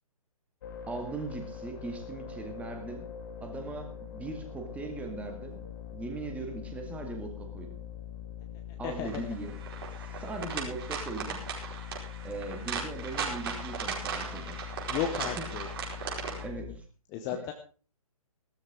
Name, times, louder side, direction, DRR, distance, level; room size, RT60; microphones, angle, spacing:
sound 1, 0.6-16.8, left 8 dB, 35° left, 1.6 m, -43 dB
voice 1, 0.9-3.1 3.4-5.7 5.9-7.8 8.8-9.6 10.2-11.4 12.2-14.6 15.2-15.4 16.4-16.8, right 3 dB, 5° right, 4 dB, 2.0 m, -39 dB
voice 2, 8.8-9.2 14.9-15.7 17.1-17.5, left 9 dB, 15° left, 5 dB, 1.0 m, -33 dB
sound 2, 9.1-16.5, right 6 dB, 40° right, 4.7 m, -37 dB
17.0 x 13.5 x 3.7 m, 0.37 s
figure-of-eight pair, 135°, 19 cm